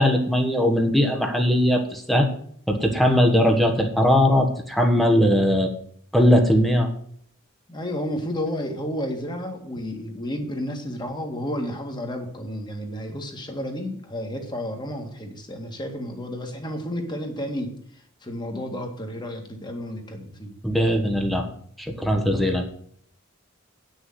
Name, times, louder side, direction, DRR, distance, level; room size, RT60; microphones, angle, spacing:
voice 1, 0.0-2.3 2.7-5.7 6.1-6.9 20.6-21.5 21.8-22.6, equal, ahead, 3 dB, 1.2 m, -19 dB
voice 2, 7.7-17.7 18.2-20.5, equal, 20° left, 3 dB, 1.9 m, -31 dB
9.2 x 6.5 x 7.8 m, 0.62 s
head